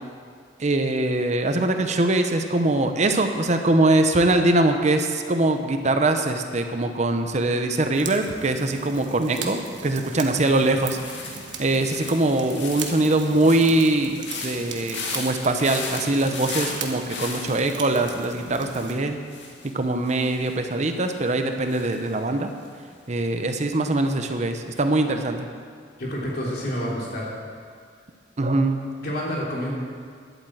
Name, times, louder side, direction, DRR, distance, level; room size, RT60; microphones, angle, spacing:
voice 1, 0.6-11.0 11.6-19.2 19.7-22.5 23.1-25.5 28.4-28.8, right 2 dB, 40° right, 6 dB, 0.7 m, -22 dB
sound 1, 7.9-18.9, right 6 dB, 90° right, 1.3 m, -39 dB
sound 2, 10.0-23.1 23.3-23.8, left 3 dB, 85° left, 2.0 m, -38 dB
voice 2, 26.0-27.3 29.0-29.7, equal, 60° left, -4 dB, 3.3 m, -28 dB
11.0 x 8.7 x 7.7 m, 2.1 s
head